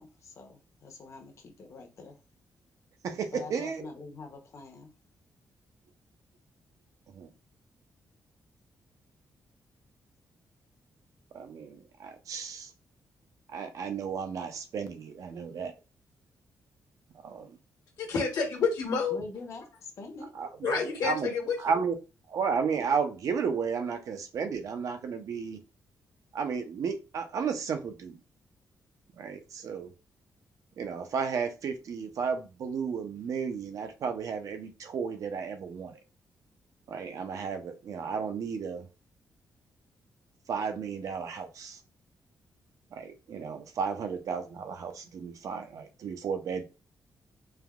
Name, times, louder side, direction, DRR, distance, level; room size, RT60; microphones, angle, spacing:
voice 1, 0.0-2.2 3.3-4.9 19.1-20.3, left 3 dB, 50° left, 0.7 m, -45 dB
voice 2, 3.0-3.9 7.1-7.3 11.3-12.7 13.5-15.7 17.2-17.6 20.4-21.3 21.6-21.9 22.3-25.6 26.3-28.2 29.2-29.9 30.8-36.0 36.9-38.9 40.5-41.8 42.9-46.6, right 6 dB, 60° right, 0.4 m, -33 dB
voice 3, 18.0-19.2 20.6-21.8, left 5 dB, 80° left, 1.1 m, -29 dB
3.3 x 2.1 x 2.3 m
wide cardioid pair, 155°, 6 cm